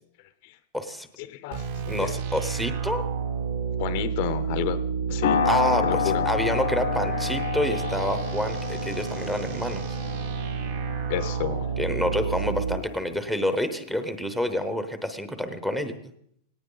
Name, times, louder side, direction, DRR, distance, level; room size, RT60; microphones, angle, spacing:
voice 1, 0.2-0.6 1.2-2.2 3.8-4.8 5.1-5.5 5.8-6.3 11.1-11.8, left 13 dB, 40° left, 12 dB, 0.7 m, -31 dB
voice 2, 0.7-1.1 1.9-3.0 5.4-10.0 11.8-16.0, equal, 5° right, 8 dB, 0.9 m, -28 dB
sound 1, 1.5-12.8, right 6 dB, 55° right, 2.5 m, -30 dB
sound 2, 5.2-13.7, left 8 dB, 80° left, 1.1 m, -30 dB
18.0 x 18.0 x 3.9 m, 0.70 s
supercardioid pair, 175°, 0 cm